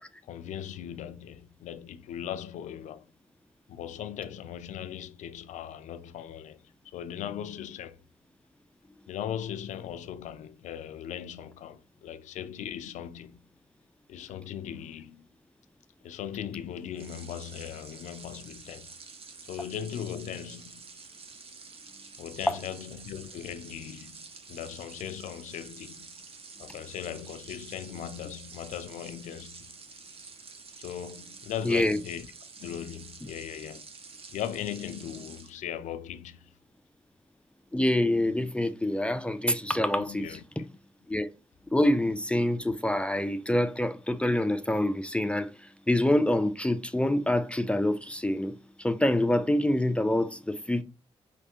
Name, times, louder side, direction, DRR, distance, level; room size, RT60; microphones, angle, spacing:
voice 1, 0.2-3.1 3.7-8.0 9.1-13.4 14.1-15.2 16.0-18.9 19.4-20.8 22.2-24.2 24.5-26.1 26.6-29.7 30.8-32.3 32.6-33.9 34.3-36.5 40.0-40.4, left 10 dB, 80° left, 0.4 m, -38 dB
sound 1, 16.9-35.5, right 4 dB, 50° right, 0.8 m, -48 dB
voice 2, 31.6-32.0 37.7-40.6 41.1-41.3 41.7-50.8, left 1 dB, 10° left, 0.5 m, -26 dB
4.9 x 3.2 x 2.9 m
supercardioid pair, 55°, 12 cm